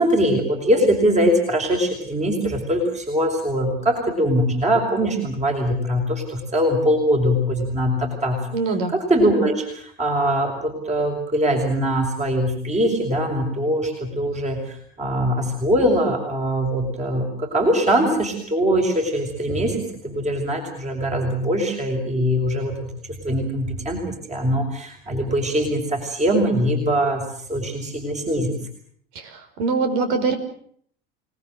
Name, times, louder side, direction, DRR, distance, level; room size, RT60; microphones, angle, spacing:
voice 1, 0.0-8.4 8.9-22.9 23.2-27.2 27.5-28.5, equal, 20° right, 2 dB, 6.3 m, -22 dB
voice 2, 8.5-8.9 29.2-30.4, right 4 dB, 70° right, 7 dB, 5.4 m, -23 dB
29.0 x 19.5 x 7.9 m, 0.62 s
hypercardioid pair, 85°, 31 cm